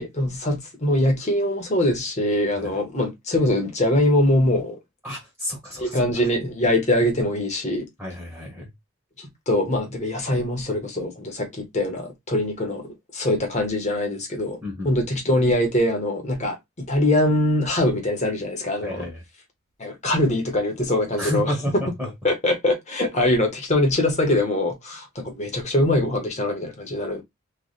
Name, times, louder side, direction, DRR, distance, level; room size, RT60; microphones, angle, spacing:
voice 1, 0.0-4.8 5.7-7.9 9.2-14.6 14.8-19.1 19.8-21.5 22.2-27.2, left 1 dB, 35° left, 1.1 m, -23 dB
voice 2, 5.0-6.0 8.0-8.7 14.6-14.9 18.8-19.2 21.2-22.1, left 1 dB, 10° right, 1.3 m, -31 dB
3.2 x 2.4 x 4.0 m
head